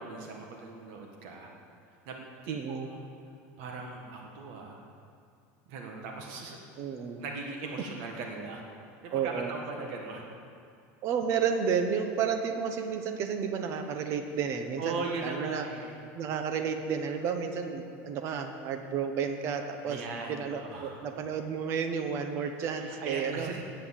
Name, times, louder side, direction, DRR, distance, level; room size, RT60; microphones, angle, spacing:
voice 1, 0.0-1.5 2.0-2.2 2.4-3.0 3.6-4.9 5.7-6.9 7.2-8.6 9.0-10.2 14.8-16.0 19.8-21.0 22.8-23.6, right 3 dB, 65° right, 1 dB, 1.7 m, -39 dB
voice 2, 2.5-2.9 6.8-7.2 9.1-9.5 11.0-15.6 16.1-20.0 20.3-23.5, right 6 dB, 45° right, 6 dB, 1.0 m, -31 dB
9.9 x 8.2 x 8.2 m, 2.3 s
supercardioid pair, 150°, 7 cm